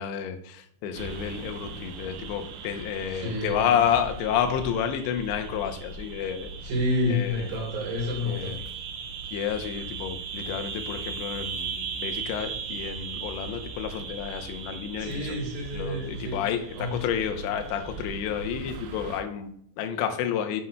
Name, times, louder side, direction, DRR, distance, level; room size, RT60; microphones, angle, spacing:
voice 1, 0.0-6.5 7.1-7.5 8.2-8.6 9.3-15.4 15.7-20.6, left 8 dB, 85° left, 7 dB, 3.0 m, -30 dB
sound 1, 1.0-19.2, right 5 dB, 85° right, 3.1 m, -38 dB
voice 2, 3.1-3.8 6.6-8.6 15.0-16.4 16.7-16.9, left 1 dB, 60° right, 0 dB, 3.2 m, -29 dB
9.5 x 7.8 x 2.2 m, 0.69 s
omnidirectional pair, 5.1 m